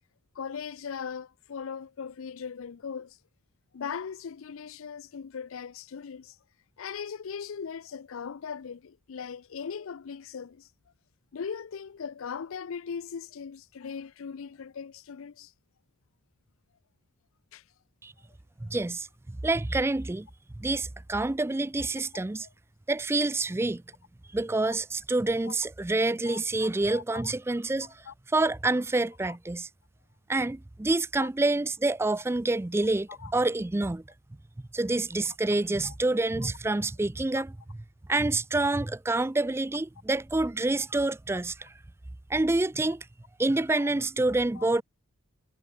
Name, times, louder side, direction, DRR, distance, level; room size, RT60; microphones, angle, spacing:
voice 1, 0.4-3.2 3.7-6.4 6.8-10.7 11.3-15.5 17.5-17.6 22.4-22.5 25.5-25.6 26.3-27.3 28.1-28.2 31.2-31.3 33.1-33.3 35.8-35.9 37.4-37.5 43.8-43.9 44.6-44.7, left 6 dB, 70° left, 0.5 m, -39 dB
voice 2, 18.6-20.3 20.6-22.5 22.9-23.8 24.3-28.0 28.3-29.7 30.3-34.0 34.7-37.5 38.1-41.7 42.3-43.1 43.4-44.8, right 2 dB, 10° right, 0.3 m, -27 dB
head